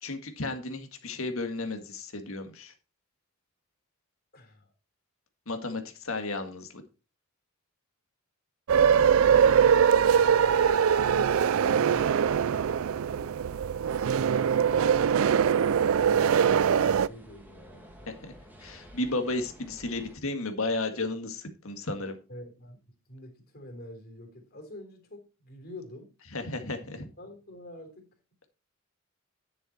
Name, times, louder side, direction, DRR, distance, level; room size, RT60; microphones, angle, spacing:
voice 1, 0.0-2.7 5.5-6.7 18.2-18.3 18.6-22.2 26.3-27.1, left 2 dB, 75° left, 6 dB, 1.8 m, -33 dB
voice 2, 4.3-4.7 11.4-13.3 15.8-18.1 22.3-26.1 27.2-28.1, left 1 dB, 45° left, 3 dB, 3.4 m, -47 dB
sound 1, 8.7-17.1, right 7 dB, 70° right, 0.4 m, -22 dB
sound 2, 14.4-20.2, equal, 10° right, 2.0 m, -52 dB
10.5 x 7.1 x 4.3 m, 0.31 s
head